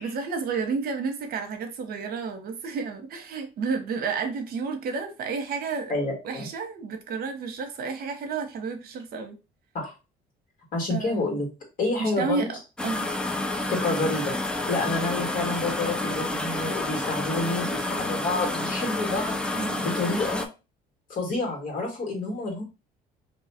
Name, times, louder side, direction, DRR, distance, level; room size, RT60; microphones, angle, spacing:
voice 1, 0.0-5.9 6.2-9.4 10.9-11.4 12.0-12.6 12.8-13.1 19.5-19.9, right 5 dB, 60° right, 0.8 m, -31 dB
voice 2, 5.9-6.5 9.7-9.9 10.7-11.5 11.8-12.5 13.7-19.4 19.8-20.5 21.1-22.6, left 2 dB, 55° left, 1.6 m, -29 dB
sound 1, 12.8-20.5, left 2 dB, 5° left, 0.4 m, -29 dB
2.7 x 2.3 x 4.1 m
cardioid pair, 110°, 17 cm